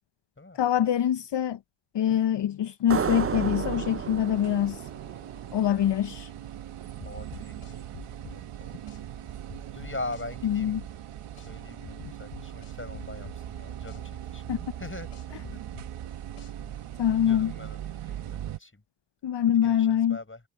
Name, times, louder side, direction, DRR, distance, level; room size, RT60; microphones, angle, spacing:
voice 1, 0.5-1.6 1.9-4.8 5.5-6.3 10.4-10.8 14.5-14.6 17.0-17.5 19.2-20.2, left 10 dB, 55° left, 0.7 m, -24 dB
sound 1, 2.9-6.2, right 6 dB, 30° right, 0.7 m, -33 dB
sound 2, 2.9-18.6, right 11 dB, 80° right, 1.5 m, -39 dB
sound 3, 7.0-9.0 9.5-11.5 11.8-14.0 14.5-16.8, left 10 dB, 85° left, 2.9 m, -46 dB
voice 2, 7.1-9.3 9.7-10.8 11.3-15.6 16.6-16.8 17.3-18.8 19.6-20.4, left 2 dB, 25° left, 7.2 m, -42 dB
supercardioid pair, 45°, 50 cm